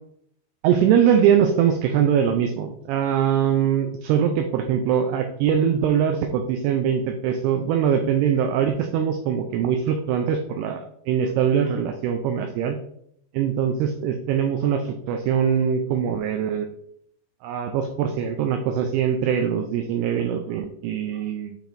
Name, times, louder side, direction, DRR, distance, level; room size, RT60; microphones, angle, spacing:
voice 1, 0.6-12.8 13.3-16.7 17.4-21.6, right 8 dB, 85° right, 6 dB, 2.3 m, -22 dB
9.0 x 5.0 x 2.6 m, 0.72 s
omnidirectional pair, 5.2 m